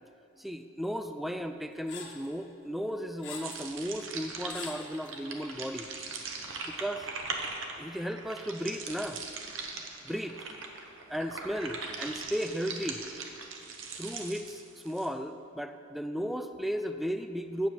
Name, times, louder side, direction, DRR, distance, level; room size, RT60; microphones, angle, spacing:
voice 1, 0.4-5.9 6.7-7.1 7.8-9.2 10.0-10.6 11.1-13.0 14.0-17.7, equal, ahead, 8 dB, 0.3 m, -35 dB
sound 1, 1.9-2.3 2.9-3.7 4.0-4.1 4.5-5.1, left 5 dB, 65° left, 1.4 m, -43 dB
sound 2, 3.4-15.1, right 4 dB, 70° right, 1.0 m, -40 dB
8.4 x 7.2 x 7.6 m, 2.6 s
head